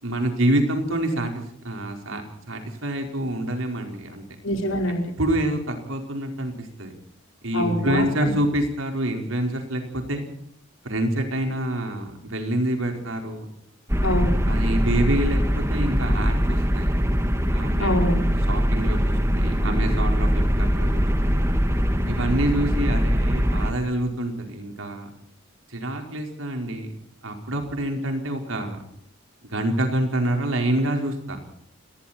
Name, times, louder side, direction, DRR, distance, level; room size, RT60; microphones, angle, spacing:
voice 1, 0.0-4.2 5.2-6.9 7.4-10.3 10.8-13.5 14.5-16.9 17.5-21.4 22.1-25.1 25.7-26.9 27.2-28.8 29.4-31.4, right 1 dB, 75° right, 4 dB, 5.0 m, -27 dB
voice 2, 4.4-5.1 7.5-8.3 14.0-14.4 17.8-18.2, left 1 dB, 75° left, 3 dB, 5.1 m, -25 dB
sound 1, 13.9-23.7, equal, 15° right, 1.9 m, -22 dB
29.5 x 19.5 x 4.5 m, 0.67 s
head